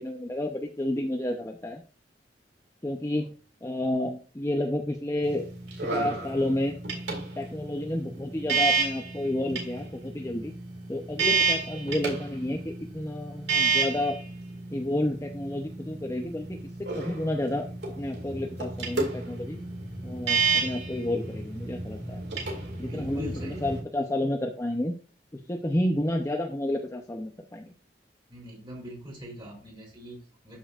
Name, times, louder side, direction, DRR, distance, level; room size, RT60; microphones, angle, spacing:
voice 1, 0.0-1.8 2.8-3.3 3.6-5.4 5.9-6.8 7.4-10.5 10.9-14.2 14.7-17.7 18.0-19.6 20.0-22.2 22.8-25.0 25.5-27.7, left 1 dB, 15° left, 3 dB, 0.7 m, -30 dB
sound 1, 5.2-23.8, right 4 dB, 75° right, 2.2 m, -31 dB
voice 2, 22.6-23.7 28.3-30.6, left 1 dB, 30° right, -1 dB, 3.3 m, -42 dB
12.5 x 5.5 x 2.5 m, 0.37 s
head